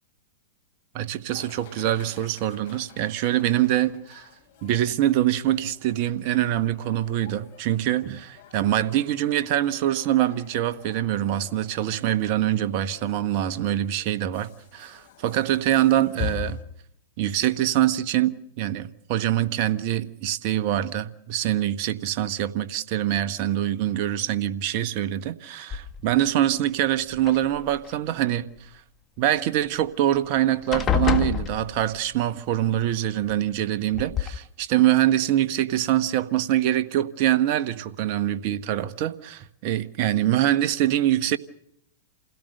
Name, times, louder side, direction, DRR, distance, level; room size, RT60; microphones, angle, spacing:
voice 1, 0.9-4.3 4.6-16.6 17.2-28.7 29.2-41.4, right 12 dB, 50° right, 1.2 m, -24 dB
sound 1, 1.3-16.6, left 8 dB, 60° left, 3.8 m, -43 dB
sound 2, 25.7-26.3 27.1-28.0 29.8-29.9 30.2-30.4 30.7-32.1 33.3-33.4 33.9-34.3, left 8 dB, 25° left, 1.8 m, -27 dB
28.0 x 17.0 x 6.6 m
hypercardioid pair, 110°, 0 cm